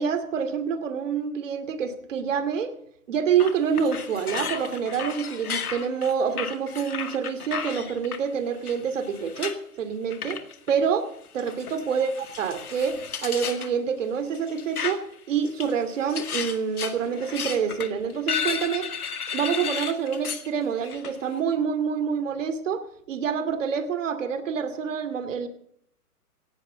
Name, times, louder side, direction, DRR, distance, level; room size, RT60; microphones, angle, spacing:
voice 1, 0.0-2.7 3.1-10.4 10.7-11.1 11.3-18.9 19.3-22.8 23.1-25.5, right 6 dB, 55° right, 9 dB, 2.6 m, -27 dB
sound 1, 3.4-8.2 8.7-9.6 10.1-10.7 11.4-13.7 14.3-15.1 15.5-20.5 20.8-21.1, left 7 dB, 75° left, 2.1 m, -33 dB
18.0 x 16.5 x 3.9 m, 0.71 s
hypercardioid pair, 140°, 45 cm